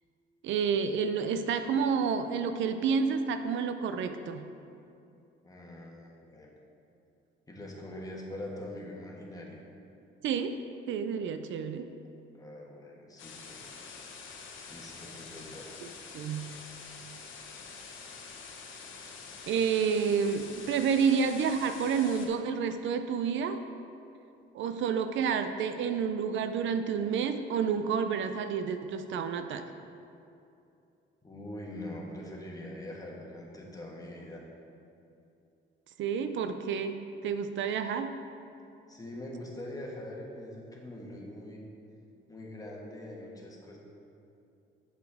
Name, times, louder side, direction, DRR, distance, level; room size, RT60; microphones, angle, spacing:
voice 1, 0.4-4.5 10.2-10.6 10.9-11.9 16.1-16.6 19.5-23.6 24.5-29.7 36.0-38.2, right 6 dB, 75° right, 9 dB, 0.4 m, -29 dB
voice 2, 5.4-6.5 7.5-9.6 12.3-13.6 14.7-15.7 31.2-34.4 36.2-36.3 38.9-41.6 42.3-43.8, left 1 dB, 20° left, -2 dB, 1.5 m, -43 dB
sound 1, 13.2-22.3, left 5 dB, 80° left, 1.0 m, -46 dB
7.6 x 7.3 x 3.5 m, 2.7 s
cardioid pair, 90°, 20 cm